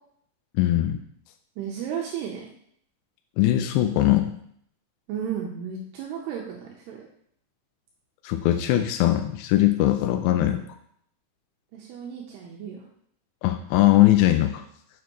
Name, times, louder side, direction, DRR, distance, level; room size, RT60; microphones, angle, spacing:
voice 1, 0.5-1.0 3.4-4.3 8.2-10.6 13.4-14.6, left 14 dB, 85° left, 7 dB, 2.6 m, -20 dB
voice 2, 1.6-2.5 5.1-7.1 11.7-12.8, right 8 dB, 75° right, -1 dB, 2.7 m, -33 dB
7.0 x 6.4 x 3.0 m, 0.67 s
omnidirectional pair, 5.1 m